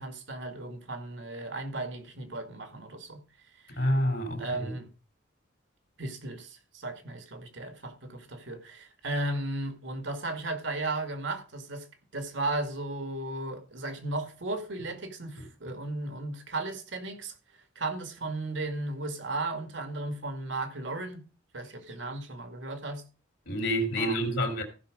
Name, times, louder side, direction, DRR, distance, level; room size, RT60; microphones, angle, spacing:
voice 1, 0.0-3.2 3.6-3.9 4.4-4.9 6.0-11.9 12.1-17.3 17.8-21.2 21.5-23.0 24.0-24.4, right 2 dB, 65° right, 2.2 m, -35 dB
voice 2, 3.7-4.7 23.5-24.6, equal, 60° left, 2.7 m, -28 dB
15.0 x 6.0 x 5.3 m
head